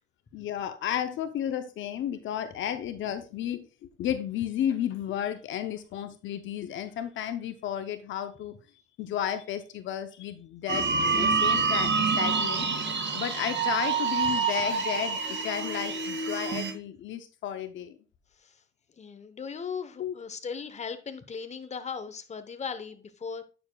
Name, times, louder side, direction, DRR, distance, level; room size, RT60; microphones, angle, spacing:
voice 1, 0.3-3.7 4.0-8.6 9.0-10.9 11.1-12.7 13.1-18.0 20.0-20.1, left 10 dB, 75° left, 0.6 m, -33 dB
sound 1, 10.7-16.7, right 5 dB, 65° right, 2.3 m, -27 dB
voice 2, 19.0-23.4, left 6 dB, 35° left, 0.9 m, -37 dB
8.9 x 6.9 x 2.3 m
cardioid pair, 90°, 20 cm